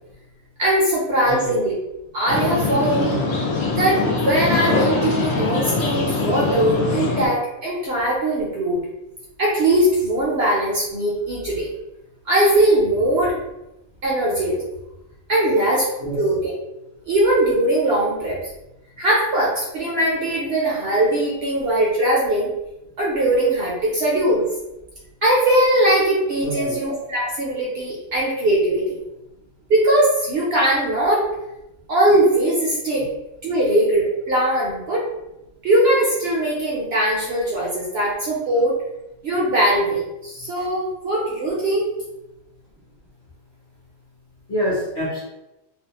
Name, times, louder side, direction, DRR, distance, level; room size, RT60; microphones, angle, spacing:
voice 1, 0.6-1.7 2.1-3.1 3.8-8.8 9.4-11.7 12.3-13.3 14.0-14.6 15.3-15.9 16.1-16.5 17.1-18.4 19.0-22.5 23.0-24.4 25.2-29.0 29.7-31.3 31.9-33.0 33.4-35.0 35.6-38.7 39.2-41.8, right 1 dB, 65° right, -5 dB, 0.7 m, -20 dB
voice 2, 1.2-1.6 16.0-16.2 26.4-26.8 44.5-45.2, equal, 40° left, -8 dB, 0.7 m, -26 dB
sound 1, 2.3-7.3, left 3 dB, 70° left, 0.9 m, -22 dB
2.5 x 2.2 x 2.8 m, 0.94 s
omnidirectional pair, 1.5 m